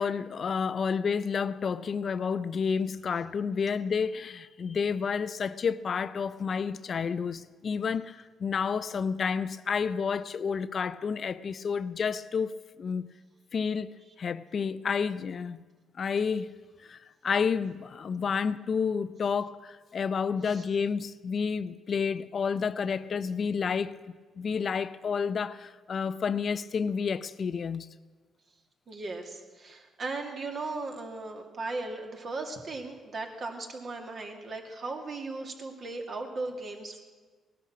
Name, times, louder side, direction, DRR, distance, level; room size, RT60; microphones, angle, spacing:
voice 1, 0.0-12.5 12.8-13.1 13.5-13.9 14.2-15.6 16.0-16.5 16.9-17.0 17.2-23.9 24.4-27.9, left 6 dB, 50° left, 0.5 m, -30 dB
voice 2, 28.9-37.0, right 3 dB, 50° right, 2.4 m, -37 dB
18.0 x 12.0 x 6.1 m
cardioid pair, 90°, 0 cm